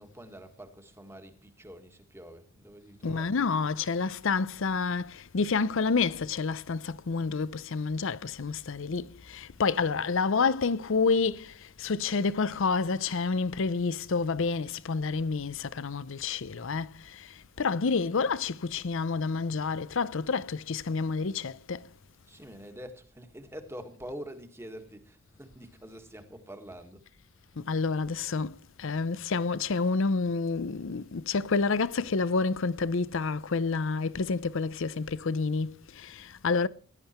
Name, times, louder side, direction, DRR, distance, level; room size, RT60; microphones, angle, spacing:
voice 1, 0.0-3.5 22.3-27.0, equal, 15° right, 1.7 m, -46 dB
voice 2, 3.0-21.9 27.6-36.7, left 4 dB, 65° left, 0.6 m, -29 dB
17.0 x 11.0 x 4.4 m
head